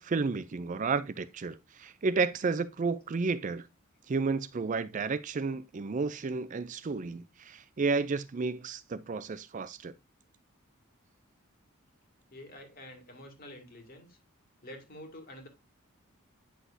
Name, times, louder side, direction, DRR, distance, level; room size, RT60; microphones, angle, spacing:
voice 1, 0.0-3.7 4.1-9.9, right 4 dB, 35° right, 0.4 m, -32 dB
voice 2, 12.3-14.2 14.6-15.5, left 1 dB, 45° left, 2.1 m, -48 dB
9.4 x 6.0 x 2.6 m
head